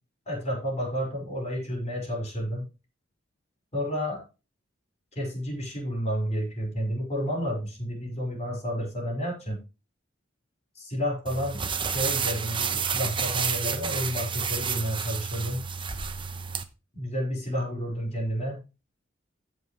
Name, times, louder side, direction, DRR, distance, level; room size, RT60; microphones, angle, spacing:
voice 1, 0.3-2.6 3.7-4.2 5.2-9.6 10.8-15.6 16.9-18.6, equal, 35° left, 2 dB, 5.4 m, -31 dB
sound 1, 11.3-16.6, right 6 dB, 25° right, 0.9 m, -30 dB
15.5 x 5.5 x 3.2 m, 0.28 s
head